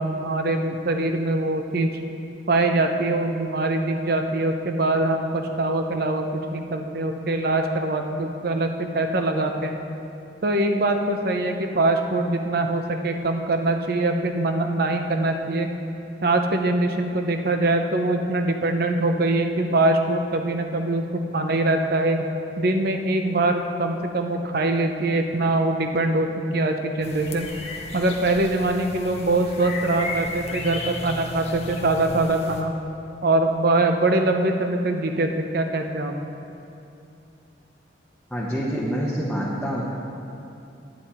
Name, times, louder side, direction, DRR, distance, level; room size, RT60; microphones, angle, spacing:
voice 1, 0.0-1.9 2.5-9.8 10.4-15.7 16.2-21.0 21.3-22.2 22.6-27.5 27.9-32.7 33.2-36.1, right 2 dB, 55° right, 5 dB, 0.7 m, -23 dB
sound 1, 27.0-32.6, left 2 dB, 35° left, 0.9 m, -35 dB
voice 2, 38.3-39.8, equal, 5° left, -6 dB, 0.9 m, -26 dB
10.0 x 9.2 x 4.3 m, 2.8 s
head